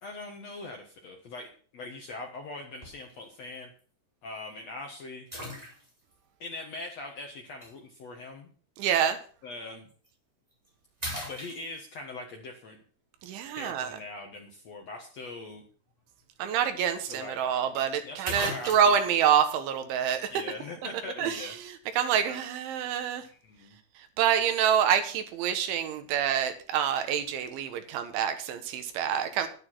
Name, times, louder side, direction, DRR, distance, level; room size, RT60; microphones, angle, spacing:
voice 1, 0.0-3.7 4.2-5.3 6.4-8.5 9.4-9.9 11.3-12.8 13.6-15.6 17.1-17.6 18.0-18.9 20.3-21.6 22.2-22.4 23.3-23.8, left 2 dB, 80° left, 2 dB, 1.5 m, -41 dB
sound 1, 2.8-3.1 3.8-3.9 5.3-6.1 7.6-7.7 9.9-10.1 10.5-10.7 11.0-12.1 16.2-16.3 16.6-16.7 17.8-17.9 18.2-19.1, equal, 10° right, 4.1 m, -38 dB
voice 2, 8.8-9.2 13.2-13.9 16.4-20.3 21.2-23.3 24.2-29.5, right 8 dB, 80° right, 8 dB, 3.8 m, -27 dB
11.0 x 9.7 x 6.1 m, 0.43 s
omnidirectional pair, 5.3 m